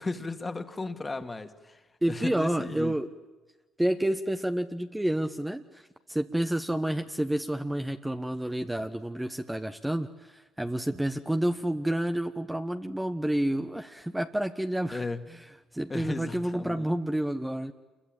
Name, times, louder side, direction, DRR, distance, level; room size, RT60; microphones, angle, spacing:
voice 1, 0.0-2.9 14.9-15.2 15.9-16.9, left 3 dB, 25° left, 2.2 m, -35 dB
voice 2, 2.0-3.1 3.8-15.4 15.7-17.7, right 1 dB, 5° right, 1.2 m, -29 dB
27.5 x 22.5 x 9.0 m
supercardioid pair, 75°, 0 cm